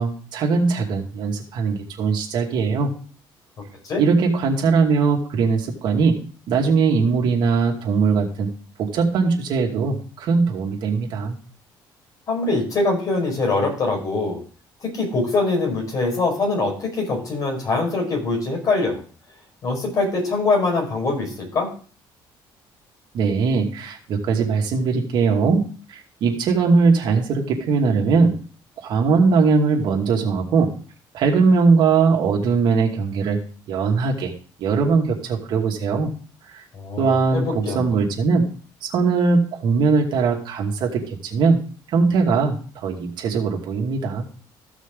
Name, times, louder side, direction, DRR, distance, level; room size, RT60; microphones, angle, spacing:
voice 1, 0.0-2.9 4.0-6.2 6.5-8.5 8.8-11.4 23.1-25.6 25.9-28.3 28.8-30.7 31.1-33.4 33.7-34.3 34.6-36.1 37.0-38.5 38.8-41.6 41.9-44.2, right 4 dB, 60° right, 1 dB, 2.4 m, -20 dB
voice 2, 12.3-14.4 14.8-19.0 19.6-21.7 36.7-37.9, left 3 dB, 45° left, 1 dB, 5.0 m, -23 dB
14.5 x 6.2 x 3.8 m, 0.40 s
cardioid pair, 140°, 9 cm